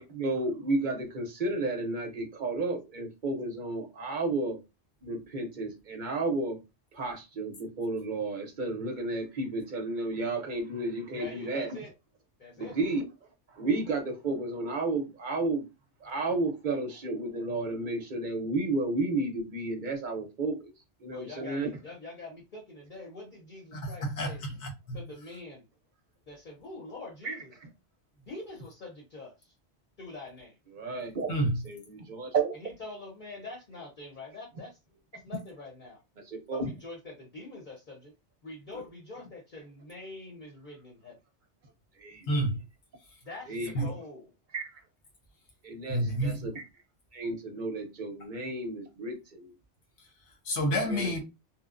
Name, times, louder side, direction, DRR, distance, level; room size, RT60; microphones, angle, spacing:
voice 1, 0.1-4.6 5.0-6.6 6.9-11.7 12.6-13.0 13.5-15.7 16.0-20.7 21.0-21.7 27.2-27.3 30.7-31.4 31.6-32.5 36.3-36.7 42.0-42.3 43.5-43.9 44.5-44.8 45.6-46.6 47.1-49.5 50.9-51.1, right 2 dB, 50° right, 0.7 m, -32 dB
voice 2, 11.1-11.9 12.4-12.7 21.0-24.4 24.9-25.6 26.3-27.5 28.2-29.5 30.0-30.6 32.6-34.8 35.2-36.0 36.5-38.1 38.4-41.2 43.2-44.3, left 2 dB, 50° left, 0.9 m, -44 dB
voice 3, 23.7-25.0 31.3-31.5 42.3-42.6 43.7-43.8 45.9-46.5 50.5-51.2, equal, 75° left, 1.2 m, -29 dB
3.0 x 2.0 x 2.4 m
omnidirectional pair, 1.2 m